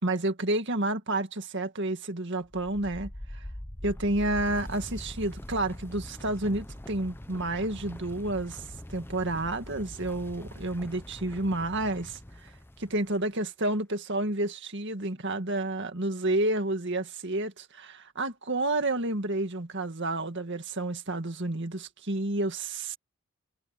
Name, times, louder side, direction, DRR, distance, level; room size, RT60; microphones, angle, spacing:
voice 1, 0.0-3.4 3.8-8.6 8.9-12.5 12.8-23.0, right 2 dB, 55° right, 2.0 m, -30 dB
sound 1, 2.4-13.2, left 1 dB, 10° left, 0.8 m, -43 dB
head